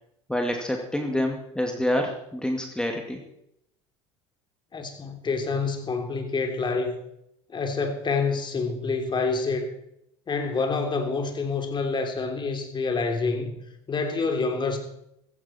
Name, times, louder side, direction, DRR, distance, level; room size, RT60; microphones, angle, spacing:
voice 1, 0.3-3.2, left 1 dB, 5° left, 3 dB, 2.3 m, -27 dB
voice 2, 4.7-6.9 7.5-9.7 10.3-13.5 13.9-14.8, left 4 dB, 30° left, 5 dB, 3.2 m, -27 dB
16.0 x 15.0 x 4.4 m, 0.78 s
hypercardioid pair, 70°, 16 cm